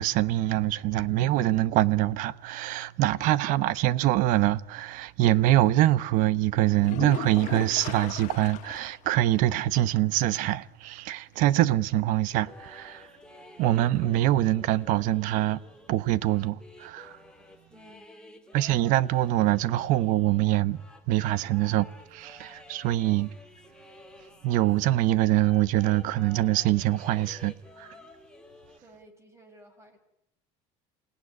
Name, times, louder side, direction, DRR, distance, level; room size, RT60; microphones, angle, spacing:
voice 1, 0.0-13.1 13.6-15.6 15.9-17.1 18.5-20.8 21.1-23.3 24.4-27.9, right 15 dB, 65° right, 1.0 m, -24 dB
sound 1, 6.8-9.1 9.4-9.5 9.9-10.0 13.8-13.9, left 14 dB, 60° left, 1.0 m, -38 dB
sound 2, 12.3-25.1 25.4-28.8, left 2 dB, 5° left, 2.7 m, -51 dB
voice 2, 17.7-18.5 28.8-30.0, equal, 20° right, 6.7 m, -55 dB
28.5 x 17.5 x 9.8 m
supercardioid pair, 120°, 15 cm